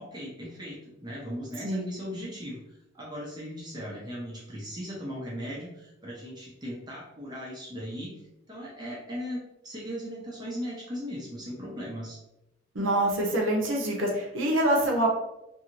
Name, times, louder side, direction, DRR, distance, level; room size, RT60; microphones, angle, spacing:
voice 1, 0.0-8.2 8.5-12.2, equal, 20° right, -3 dB, 0.5 m, -38 dB
voice 2, 12.7-15.1, right 1 dB, 70° right, -1 dB, 0.8 m, -25 dB
2.6 x 2.5 x 2.9 m, 0.89 s
head